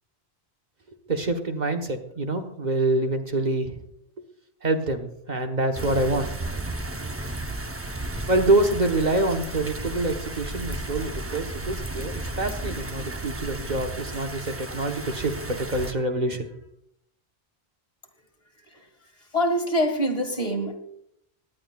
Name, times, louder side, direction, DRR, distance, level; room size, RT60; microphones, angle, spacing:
voice 1, 0.9-3.8 4.6-6.3 8.3-16.5, right 2 dB, 45° right, 5 dB, 1.2 m, -26 dB
sound 1, 5.7-15.9, right 2 dB, 15° right, 0.5 m, -34 dB
voice 2, 19.3-20.8, equal, 35° left, 2 dB, 2.0 m, -25 dB
18.5 x 10.5 x 2.3 m, 0.74 s
omnidirectional pair, 1.1 m